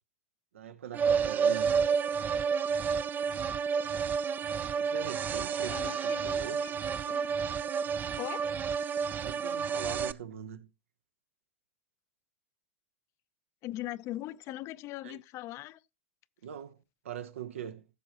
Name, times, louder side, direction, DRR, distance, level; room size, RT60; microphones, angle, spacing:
voice 1, 0.5-2.0 4.8-6.6 9.2-10.7 15.0-15.2 16.4-17.9, right 9 dB, 80° right, 0.9 m, -42 dB
sound 1, 0.9-10.1, right 6 dB, 25° right, 0.4 m, -30 dB
voice 2, 5.6-6.7 7.1-7.3 8.2-8.5 13.6-15.8, left 16 dB, 45° left, 0.5 m, -40 dB
15.0 x 6.8 x 2.9 m
hypercardioid pair, 105°, 7 cm